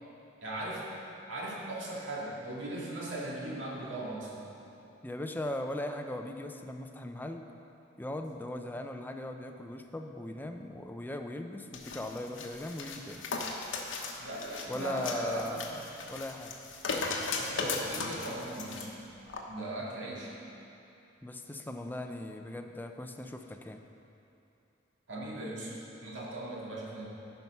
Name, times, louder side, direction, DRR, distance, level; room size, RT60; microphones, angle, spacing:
voice 1, 0.4-0.9 1.3-4.4 14.2-15.6 17.4-18.9 19.5-20.3 25.1-27.1, right 1 dB, 75° right, -5 dB, 2.3 m, -38 dB
voice 2, 5.0-7.5 8.0-13.2 14.7-15.8 16.1-16.5 21.2-23.8, left 1 dB, 10° left, 5 dB, 0.5 m, -39 dB
sound 1, 11.7-18.9 19.3-19.4, left 3 dB, 80° left, 1.1 m, -37 dB
14.0 x 5.8 x 5.5 m, 2.8 s
head